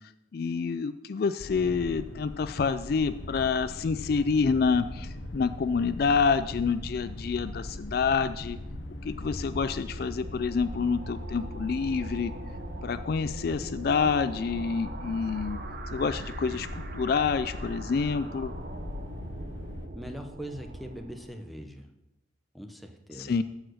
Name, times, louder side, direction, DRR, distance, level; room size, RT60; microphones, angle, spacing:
voice 1, 0.3-8.6 9.0-12.3 12.8-15.6 15.9-18.5 23.1-23.4, left 5 dB, 50° left, 13 dB, 0.3 m, -27 dB
sound 1, 1.4-19.9, left 1 dB, 70° left, 1.0 m, -40 dB
sound 2, 2.9-21.2, right 1 dB, 85° right, 1.0 m, -47 dB
sound 3, 9.2-21.6, right 3 dB, 50° right, 0.8 m, -46 dB
voice 2, 19.9-21.9 22.5-23.3, equal, ahead, 4 dB, 0.8 m, -41 dB
14.5 x 4.9 x 6.3 m, 0.95 s
head